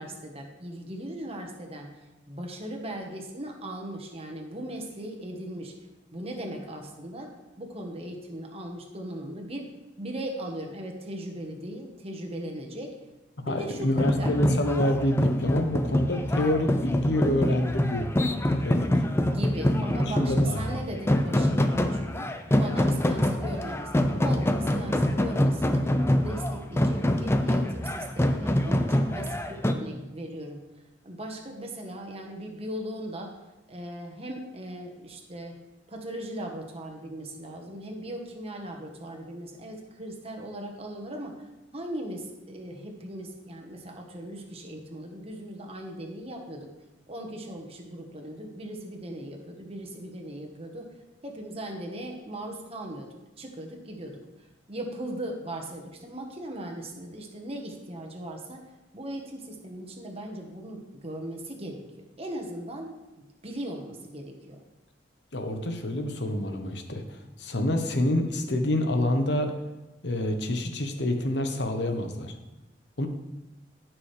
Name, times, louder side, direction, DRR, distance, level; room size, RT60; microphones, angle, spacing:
voice 1, 0.0-5.7 6.1-7.3 7.6-9.7 10.0-12.9 13.5-14.3 19.2-22.3 22.5-25.8 26.2-30.6 31.0-33.4 33.7-35.6 35.9-46.7 47.1-50.9 51.2-58.6 58.9-61.8 62.2-64.6, right 1 dB, 35° right, 2 dB, 1.4 m, -38 dB
voice 2, 13.4-18.1 18.6-18.9 19.8-20.8 65.3-69.5 70.0-72.3 73.0-73.1, left 1 dB, 70° left, 6 dB, 1.1 m, -27 dB
sound 1, 14.0-29.7, left 1 dB, 15° left, 0.5 m, -25 dB
14.5 x 6.1 x 3.4 m, 1.0 s
head